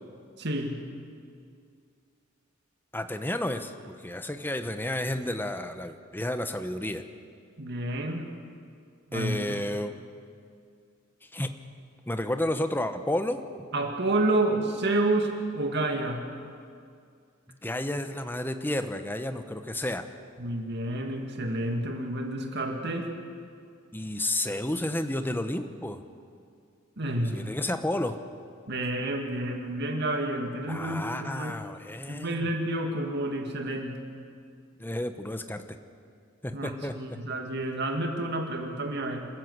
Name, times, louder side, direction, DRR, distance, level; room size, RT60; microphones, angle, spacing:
voice 1, 0.4-0.8 7.6-8.3 9.1-9.6 13.7-16.2 20.4-23.1 27.0-27.5 28.7-31.6 32.1-33.9 36.5-39.3, right 1 dB, 55° right, 3 dB, 2.2 m, -29 dB
voice 2, 2.9-7.0 9.1-9.9 11.3-11.5 12.1-13.7 17.6-20.1 23.9-26.0 27.3-28.2 30.7-32.5 34.8-35.6 36.4-37.2, left 1 dB, 10° left, 8 dB, 1.0 m, -31 dB
27.5 x 14.0 x 8.0 m, 2.3 s
head